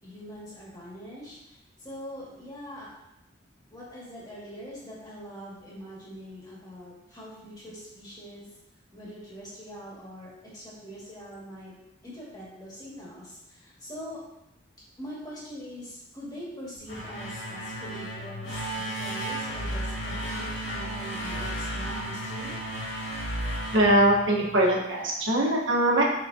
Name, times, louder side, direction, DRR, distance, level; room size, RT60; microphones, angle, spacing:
voice 1, 0.0-2.9 3.7-8.5 8.9-11.7 12.0-14.2 15.0-22.5, equal, 20° left, -7 dB, 2.3 m, -43 dB
sound 1, 16.8-24.7, right 1 dB, 70° left, 2.5 m, -34 dB
voice 2, 23.7-26.0, right 1 dB, 70° right, -3 dB, 1.4 m, -22 dB
6.1 x 6.0 x 2.9 m, 0.88 s
head